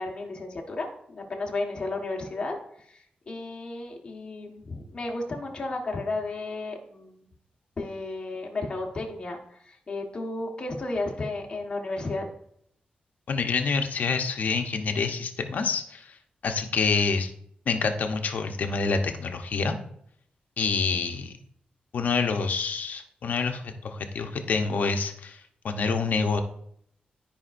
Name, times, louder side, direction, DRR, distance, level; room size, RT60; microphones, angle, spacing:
voice 1, 0.0-2.5 2.9-7.3 7.8-12.3, left 2 dB, 30° left, 0 dB, 1.4 m, -33 dB
voice 2, 13.3-16.2 16.4-17.3 17.7-19.8 20.6-21.3 21.9-26.4, left 4 dB, 65° left, 5 dB, 0.8 m, -27 dB
13.0 x 5.1 x 2.6 m, 0.70 s
wide cardioid pair, 165°, 3 cm